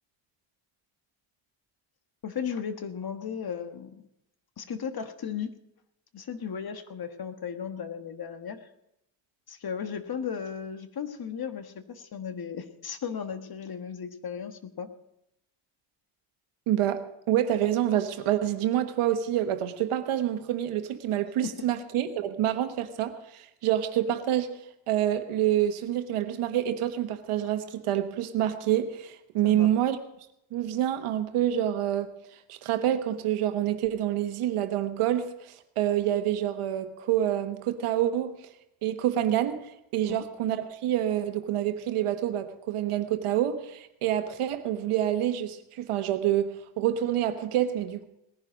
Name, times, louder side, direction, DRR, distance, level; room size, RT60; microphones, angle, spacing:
voice 1, 2.2-4.0 4.6-5.5 6.1-8.7 9.5-14.9 21.4-21.6 29.5-29.7 40.0-40.2, left 7 dB, 45° left, 1.5 m, -35 dB
voice 2, 16.7-24.5 24.9-30.0 30.5-32.1 32.5-38.4 38.8-39.6 39.9-48.0, right 11 dB, 85° right, 1.4 m, -27 dB
19.0 x 10.5 x 5.1 m
cardioid pair, 80°, 49 cm